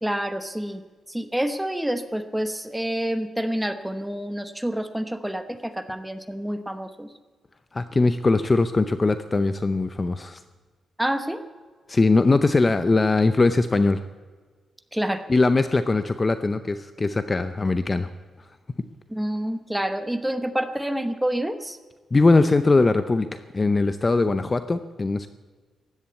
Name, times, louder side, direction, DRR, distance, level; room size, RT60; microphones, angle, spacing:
voice 1, 0.0-0.8 1.1-7.1 11.0-11.4 14.9-15.2 19.1-21.8, right 1 dB, 5° right, 9 dB, 1.0 m, -28 dB
voice 2, 7.7-10.4 11.9-14.0 15.3-18.1 22.1-25.3, left 3 dB, 20° left, 11 dB, 0.6 m, -21 dB
15.5 x 11.0 x 8.3 m, 1.4 s
wide cardioid pair, 150°, 0 cm